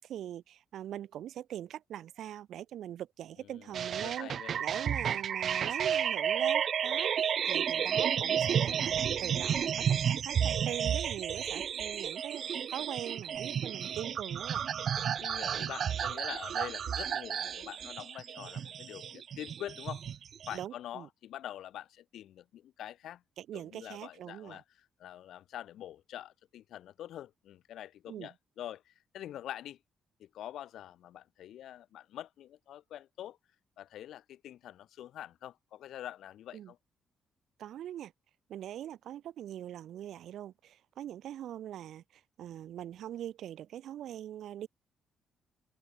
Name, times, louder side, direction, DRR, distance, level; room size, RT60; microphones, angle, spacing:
voice 1, 0.0-4.3 4.6-14.6 20.5-21.1 23.4-24.6 28.1-28.3 36.5-36.7 37.6-38.1 38.5-44.7, right 11 dB, 65° right, 6.9 m, -42 dB
voice 2, 3.4-3.7 4.0-4.5 7.6-7.9 15.2-20.0 20.5-23.2 23.5-29.8 30.2-33.4 33.8-36.8, left 12 dB, 70° left, 6.5 m, -45 dB
sound 1, 3.7-20.6, right 8 dB, 45° right, 1.2 m, -32 dB
open air
cardioid pair, 160°, 0 cm